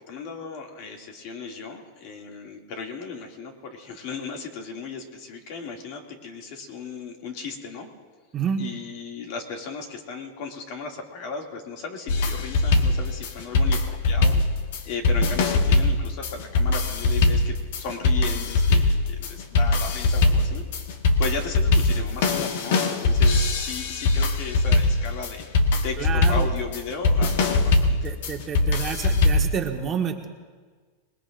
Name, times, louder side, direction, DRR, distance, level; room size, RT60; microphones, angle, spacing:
voice 1, 0.1-7.9 8.6-14.4 14.8-20.6 21.2-25.4 25.8-28.0, left 4 dB, 55° left, 2 dB, 2.5 m, -36 dB
voice 2, 8.3-8.6 26.0-26.5 28.0-30.3, right 7 dB, 25° right, 2 dB, 1.5 m, -29 dB
sound 1, 12.1-29.6, left 3 dB, 70° left, 1.7 m, -21 dB
26.5 x 20.5 x 2.6 m, 1.5 s
supercardioid pair, 145°, 0 cm